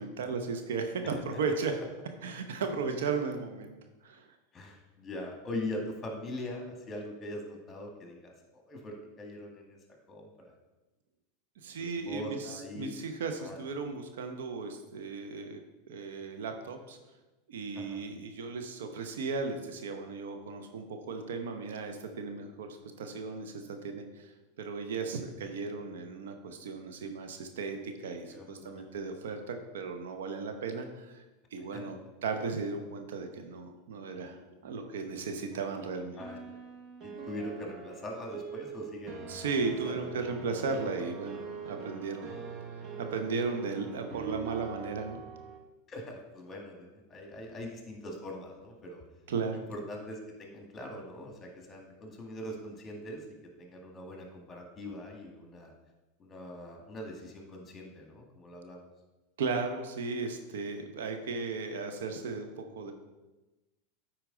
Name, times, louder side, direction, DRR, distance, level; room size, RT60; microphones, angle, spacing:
voice 1, 0.0-1.7 2.2-3.7 4.0-4.3 11.6-15.6 15.9-17.0 17.5-31.2 31.5-36.2 39.3-41.4 41.6-42.3 42.7-45.2 49.3-49.6 59.4-62.9, right 4 dB, 75° right, 6 dB, 0.8 m, -36 dB
voice 2, 4.5-9.8 10.1-10.5 11.8-12.9 13.4-13.6 17.7-18.0 28.3-28.8 31.7-31.8 36.2-36.6 37.0-39.3 39.8-40.2 45.9-49.0 49.5-53.3 53.6-55.7 56.2-58.9, left 1 dB, 25° left, 2 dB, 1.8 m, -42 dB
sound 1, 35.5-45.6, right 5 dB, 40° right, 1.2 m, -43 dB
8.9 x 4.5 x 3.8 m, 1.1 s
hypercardioid pair, 95°, 0 cm